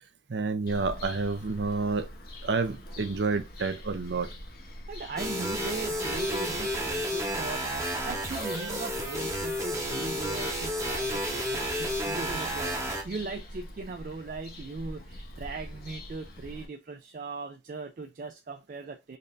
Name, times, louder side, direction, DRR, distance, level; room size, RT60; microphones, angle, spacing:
voice 1, 0.3-2.1 2.4-4.3, right 4 dB, 90° right, 0.6 m, -29 dB
Bird vocalization bird call bird song, 0.7-16.7, left 1 dB, 55° left, 0.9 m, -43 dB
voice 2, 4.9-19.2, right 3 dB, 50° right, 0.3 m, -39 dB
sound 1, 5.2-13.0, equal, 15° right, 0.9 m, -31 dB
4.0 x 2.6 x 3.2 m
head